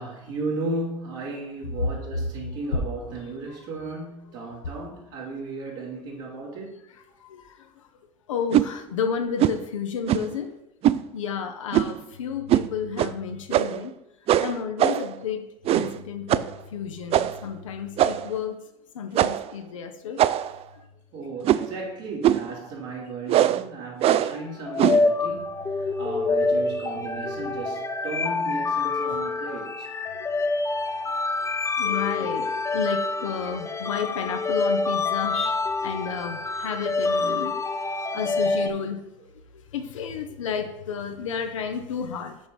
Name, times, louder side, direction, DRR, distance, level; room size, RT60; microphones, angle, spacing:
voice 1, 0.0-6.8 21.1-29.9, right 3 dB, 70° right, -3 dB, 2.8 m, -35 dB
voice 2, 7.2-7.8 8.3-10.5 11.1-14.0 14.4-18.6 18.9-20.2 24.1-24.4 24.7-24.8 29.1-29.2 30.1-30.4 31.4-31.5 31.8-37.7 38.1-39.0 39.5-42.4, left 7 dB, 90° left, 5 dB, 0.8 m, -32 dB
sound 1, 8.5-8.7 9.4-9.6 10.1-10.4 10.8-11.0 11.7-12.0 12.5-12.7 13.0-13.1 13.5-13.9 14.3-15.1 15.6-16.0 16.3-16.5 17.1-17.4 18.0-18.4 19.1-19.5 20.2-20.6 21.4-21.8 22.2-22.5 23.3-23.6 24.0-24.4 24.8-25.1, right 12 dB, 40° right, 0.3 m, -21 dB
sound 2, 24.3-38.7, left 3 dB, 20° left, 0.7 m, -26 dB
6.5 x 4.6 x 5.3 m, 0.90 s
hypercardioid pair, 80°, 16 cm